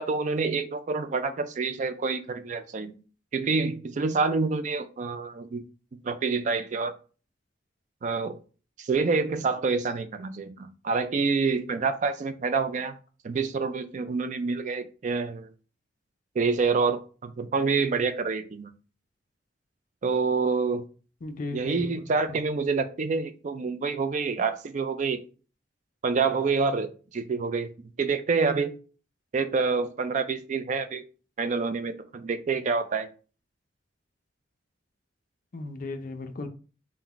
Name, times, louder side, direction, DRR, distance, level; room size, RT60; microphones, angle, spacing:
voice 1, 0.0-2.9 3.3-5.6 6.0-6.9 8.0-8.4 8.8-13.0 13.2-15.5 16.4-18.7 20.0-20.8 21.5-25.2 26.0-27.7 28.0-28.7 29.3-31.0 31.4-33.1, right 4 dB, 40° right, 10 dB, 0.4 m, -27 dB
voice 2, 21.2-22.4 35.5-36.5, left 2 dB, 50° left, 8 dB, 0.5 m, -36 dB
3.9 x 2.1 x 4.3 m, 0.37 s
head